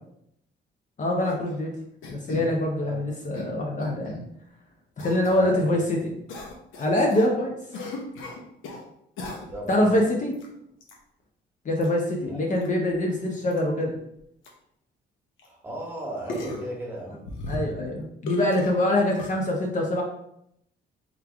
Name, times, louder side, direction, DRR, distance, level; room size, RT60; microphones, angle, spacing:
voice 1, 1.0-1.7 2.1-4.2 5.0-6.1 6.8-7.5 9.7-10.3 11.6-14.0 17.5-20.0, left 1 dB, 40° left, 0 dB, 0.7 m, -24 dB
sound 1, 1.2-1.5 2.0-2.5 3.1-3.5 3.8-4.2 5.0-5.4 6.3-7.3 7.7-8.8 9.2-9.7 10.3-10.5 10.8-10.9 11.8-11.9 12.6-12.7 12.9-13.0 13.5-13.6 14.2-14.3 14.4-14.5 15.4-15.5 16.3-16.7 17.2-17.9 18.3-18.7 19.2-19.3, left 2 dB, 85° left, 0.9 m, -36 dB
voice 2, 5.2-5.9 9.5-9.9 12.2-12.4 15.4-17.3, right 1 dB, 10° right, -2 dB, 1.4 m, -36 dB
3.7 x 3.2 x 3.5 m, 0.75 s
cardioid pair, 90°, 20 cm